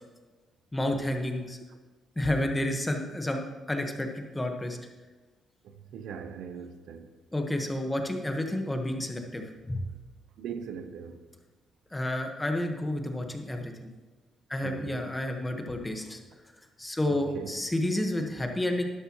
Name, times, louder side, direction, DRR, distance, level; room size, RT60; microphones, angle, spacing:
voice 1, 0.7-1.6 2.2-3.4 3.7-4.8 7.3-9.8 11.9-13.9 14.5-16.2 16.8-18.8, left 1 dB, 10° left, 1.4 m, -30 dB
voice 2, 5.6-7.1 10.4-11.2 14.6-15.1 17.1-17.6, right 7 dB, 80° right, 0.7 m, -40 dB
12.0 x 11.0 x 3.1 m
cardioid pair, 90°, 0 cm